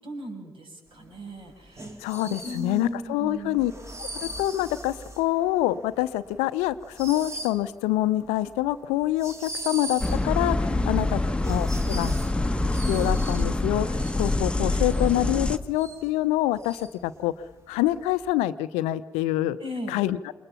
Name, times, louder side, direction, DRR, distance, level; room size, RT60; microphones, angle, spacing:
voice 1, 0.0-3.6 19.6-20.0, equal, 50° right, 3 dB, 6.5 m, -37 dB
sound 1, 1.1-18.3, right 1 dB, 25° right, 3.2 m, -41 dB
voice 2, 2.0-3.7 4.0-11.2 11.5-12.1 12.9-17.3 17.7-19.6 19.9-20.2, left 15 dB, 65° left, 15 dB, 0.7 m, -26 dB
sound 2, 10.0-15.6, left 2 dB, 10° left, 1.3 m, -25 dB
28.0 x 22.5 x 5.9 m, 1.1 s
figure-of-eight pair, 45°, 12 cm